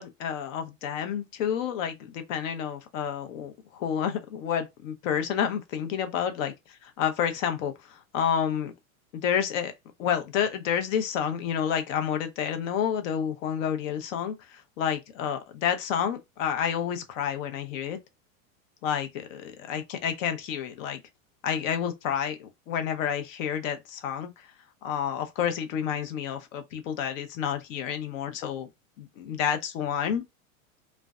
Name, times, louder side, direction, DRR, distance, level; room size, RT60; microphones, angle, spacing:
voice 1, 0.0-6.5 6.8-8.7 9.1-9.7 10.0-18.0 18.8-21.0 21.4-24.5 24.8-28.7 29.0-30.2, left 8 dB, 65° left, 0.7 m, -29 dB
2.5 x 2.1 x 2.3 m
supercardioid pair, 145°, 41 cm